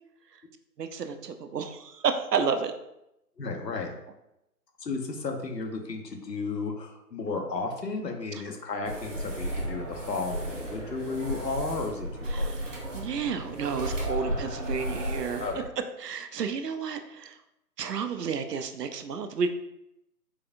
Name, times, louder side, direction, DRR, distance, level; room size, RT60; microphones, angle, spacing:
voice 1, 0.8-2.7 12.3-15.4 16.0-17.3 17.8-19.5, right 6 dB, 75° right, 8 dB, 0.6 m, -31 dB
voice 2, 3.4-3.9 4.8-12.5 15.4-15.6, left 3 dB, 85° left, 3 dB, 0.8 m, -33 dB
sound 1, 8.9-15.7, equal, 50° right, 0.9 m, -34 dB
4.7 x 2.3 x 2.6 m, 0.85 s
figure-of-eight pair, 150°, 48 cm